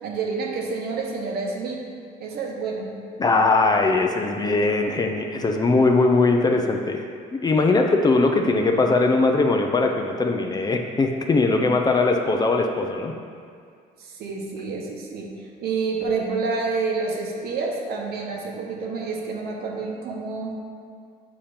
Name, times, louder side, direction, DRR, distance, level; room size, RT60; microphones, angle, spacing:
voice 1, 0.0-1.8 2.2-2.9 14.0-15.3 15.6-20.6, right 4 dB, 70° right, 0 dB, 1.0 m, -28 dB
voice 2, 3.2-7.0 7.4-13.1, left 3 dB, 25° left, 3 dB, 0.4 m, -20 dB
7.1 x 2.9 x 5.0 m, 2.2 s
cardioid pair, 110°, 17 cm